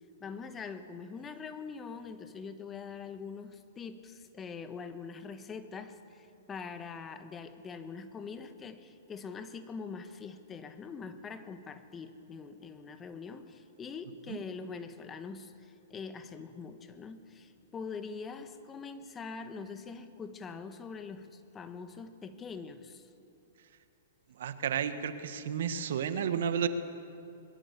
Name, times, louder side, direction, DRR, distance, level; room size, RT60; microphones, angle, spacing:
voice 1, 0.2-23.1, left 5 dB, 20° left, 9 dB, 1.5 m, -43 dB
voice 2, 24.4-26.7, right 8 dB, 65° right, 10 dB, 1.5 m, -32 dB
24.0 x 22.0 x 7.1 m, 2.7 s
hypercardioid pair, 120°, 0 cm